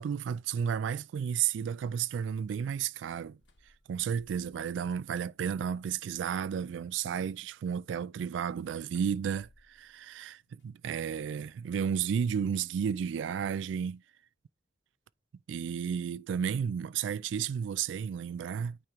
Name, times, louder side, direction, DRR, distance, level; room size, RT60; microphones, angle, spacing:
voice 1, 0.0-3.4 3.9-14.0 15.5-18.8, right 7 dB, 80° right, 0.3 m, -32 dB
sound 1, 3.4-4.9 5.3-6.2 8.4-11.2, left 1 dB, 75° left, 1.3 m, -66 dB
8.8 x 3.0 x 3.6 m
head